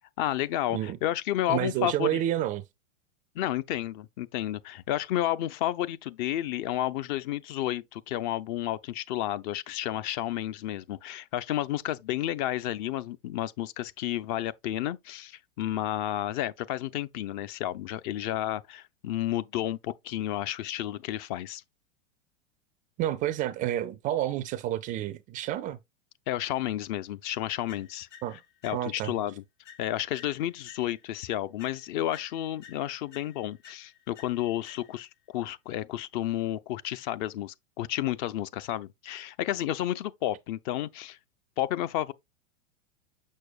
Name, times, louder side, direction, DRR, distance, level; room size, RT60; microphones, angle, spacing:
voice 1, 0.2-2.2 3.4-21.6 26.3-28.1 28.6-29.4 29.8-35.1 35.3-41.2 41.6-42.1, left 13 dB, 40° left, 0.5 m, -31 dB
voice 2, 1.5-2.6 23.0-25.8 28.2-28.4 28.7-29.1, right 12 dB, 25° right, 0.3 m, -29 dB
sound 1, 27.7-29.2 29.6-31.2 31.6-35.2, left 8 dB, 75° left, 4.2 m, -54 dB
6.4 x 6.3 x 2.3 m
hypercardioid pair, 100°, 36 cm